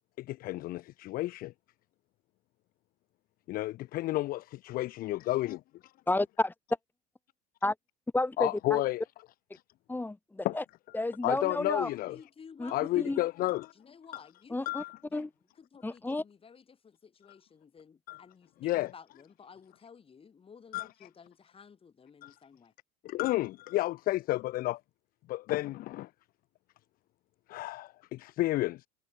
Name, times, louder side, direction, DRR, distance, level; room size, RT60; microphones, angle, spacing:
voice 1, 0.2-1.5 3.5-5.9 8.4-9.0 10.4-10.6 11.2-12.2 12.7-13.7 14.7-15.0 18.1-18.2 18.6-18.9 20.7-20.9 22.2-22.3 23.0-24.8 25.3-26.1 27.5-28.9, left 17 dB, 45° left, 0.6 m, -31 dB
voice 2, 6.1-6.5 7.6-7.7 8.1-8.8 9.9-10.6 10.9-11.9 12.6-13.2 14.5-14.8 15.1-15.3 15.8-16.2, left 2 dB, 10° left, 1.2 m, -31 dB
voice 3, 11.8-13.3 13.7-14.8 15.1-15.3 15.5-22.7, left 6 dB, 25° left, 4.9 m, -54 dB
hypercardioid pair, 90°, 20 cm